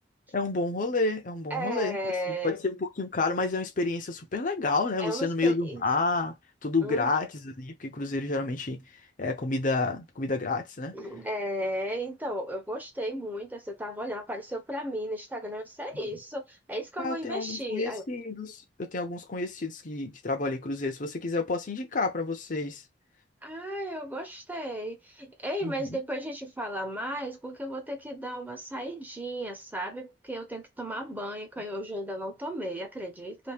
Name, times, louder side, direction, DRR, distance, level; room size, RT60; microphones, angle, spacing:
voice 1, 0.3-2.0 2.3-6.3 6.6-8.8 9.2-10.9 17.0-22.8 25.6-26.0, left 3 dB, 50° left, 0.7 m, -30 dB
voice 2, 1.5-2.6 5.0-5.8 6.8-7.1 10.9-18.0 23.4-33.5, equal, 10° right, 0.9 m, -35 dB
2.9 x 2.8 x 3.4 m
head